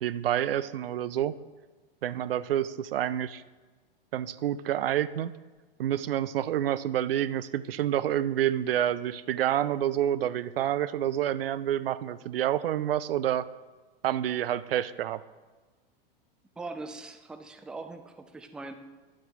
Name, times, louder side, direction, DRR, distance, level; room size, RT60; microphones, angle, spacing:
voice 1, 0.0-1.4 2.0-3.4 4.1-5.3 5.8-13.5 14.0-15.2, right 11 dB, 70° right, 15 dB, 0.5 m, -28 dB
voice 2, 16.6-18.7, right 3 dB, 5° right, 8 dB, 0.4 m, -41 dB
10.5 x 7.4 x 3.5 m, 1.3 s
figure-of-eight pair, 95°, 30 cm